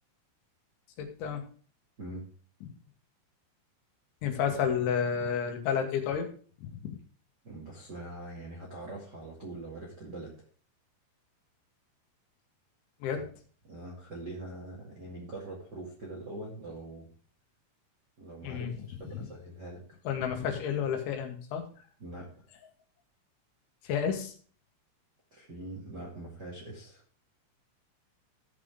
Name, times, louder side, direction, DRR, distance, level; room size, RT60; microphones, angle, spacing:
voice 1, 1.0-1.4 4.2-6.3 6.6-7.0 13.0-13.2 18.4-18.7 20.1-21.6 23.8-24.3, left 7 dB, 75° left, 5 dB, 3.6 m, -31 dB
voice 2, 7.4-10.3 13.1-13.2 13.6-17.1 18.2-19.8 22.0-22.3 25.3-27.0, right 2 dB, 50° right, -3 dB, 1.2 m, -43 dB
15.0 x 6.0 x 3.6 m, 0.43 s
omnidirectional pair, 5.8 m